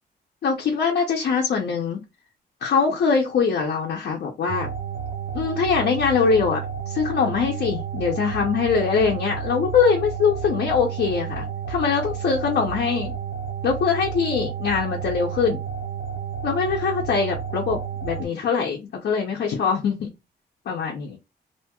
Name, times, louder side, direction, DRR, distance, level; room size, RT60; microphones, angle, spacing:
voice 1, 0.4-2.0 2.6-4.7 5.3-6.6 6.9-13.1 13.6-15.6 16.4-20.1 20.7-21.2, left 5 dB, 75° left, 0.7 m, -22 dB
sound 1, 4.5-18.2, right 7 dB, 55° right, 0.5 m, -31 dB
2.7 x 2.2 x 2.9 m
wide cardioid pair, 140°, 17 cm